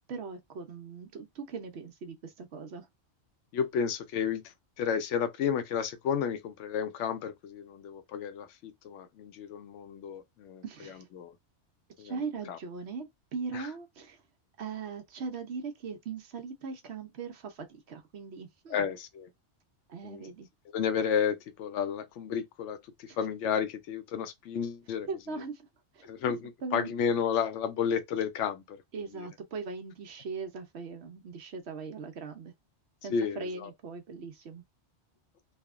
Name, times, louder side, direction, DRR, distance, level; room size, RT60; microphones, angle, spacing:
voice 1, 0.1-2.9 10.6-11.0 12.0-14.2 14.6-18.8 19.9-20.5 23.1-23.2 25.1-25.7 25.9-26.1 26.6-26.9 28.9-32.5 33.0-34.6, right 5 dB, 65° right, 0.9 m, -40 dB
voice 2, 3.5-10.6 11.2-11.3 12.0-12.2 12.5-12.6 13.5-13.7 18.7-19.3 20.0-20.2 20.7-25.4 26.1-28.8 33.1-33.7, left 7 dB, 85° left, 0.9 m, -32 dB
3.3 x 2.1 x 2.3 m
omnidirectional pair, 1.2 m